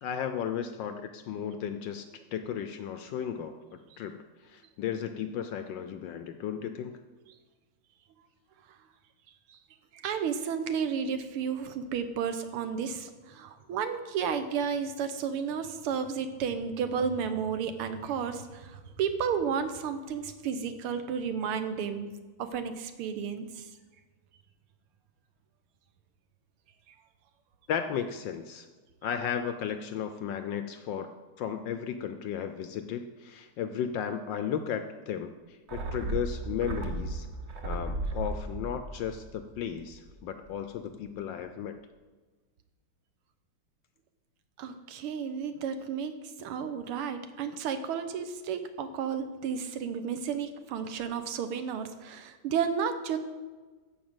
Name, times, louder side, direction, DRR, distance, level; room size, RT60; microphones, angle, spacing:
voice 1, 0.0-7.0 27.7-28.7 29.0-37.3 37.6-41.8, left 8 dB, 75° left, 8 dB, 1.1 m, -35 dB
voice 2, 9.9-22.1 22.4-23.7 44.6-53.2, right 7 dB, 85° right, 9 dB, 1.7 m, -32 dB
sound 1, 35.7-40.3 40.6-40.7, right 2 dB, 55° right, 0.7 m, -36 dB
11.5 x 5.1 x 7.8 m, 1.3 s
omnidirectional pair, 2.4 m